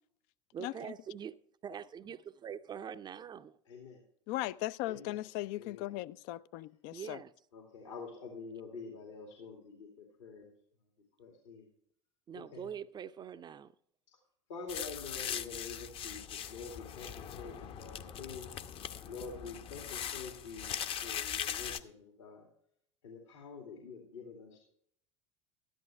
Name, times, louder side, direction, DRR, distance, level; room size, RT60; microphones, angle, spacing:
voice 1, 0.5-1.3 1.6-3.6 6.9-7.3 12.3-13.7, right 8 dB, 30° right, 0.5 m, -44 dB
voice 2, 3.6-4.0 4.9-5.2 5.6-5.9 7.5-10.5 11.2-11.7 12.3-12.7 14.1-14.2 14.5-18.6 19.1-20.8 21.0-22.5 23.0-24.6, left 4 dB, 70° left, 2.5 m, -47 dB
voice 3, 4.3-7.2, left 16 dB, 55° left, 0.5 m, -38 dB
sound 1, 14.7-21.8, left 9 dB, 35° left, 0.8 m, -40 dB
13.5 x 11.0 x 3.4 m
figure-of-eight pair, 75°, 16 cm